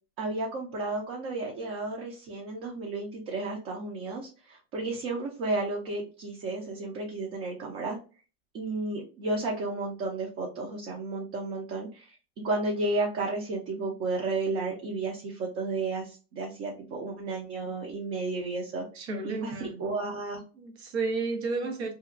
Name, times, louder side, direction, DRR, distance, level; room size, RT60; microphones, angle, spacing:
voice 1, 0.2-8.0 8.5-12.1 12.4-20.4, right 3 dB, 45° right, 0.7 m, -32 dB
voice 2, 18.9-19.8 20.6-21.9, right 3 dB, 80° right, 0.9 m, -32 dB
2.8 x 2.3 x 2.4 m
hypercardioid pair, 105°, 32 cm